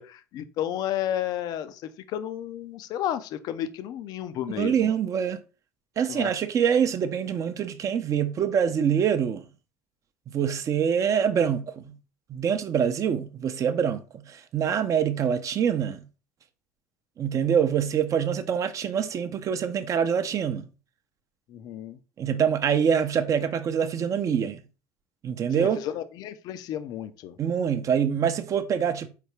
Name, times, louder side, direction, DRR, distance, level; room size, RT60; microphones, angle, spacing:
voice 1, 0.0-4.9 6.1-6.3 21.5-22.0 25.5-27.4, left 11 dB, 50° left, 0.4 m, -32 dB
voice 2, 4.6-5.4 6.0-9.4 10.3-11.9 12.3-16.0 17.2-20.7 22.2-24.6 25.2-25.8 27.4-29.1, right 8 dB, 40° right, 0.5 m, -25 dB
4.3 x 3.3 x 3.2 m
figure-of-eight pair, 60°, 9 cm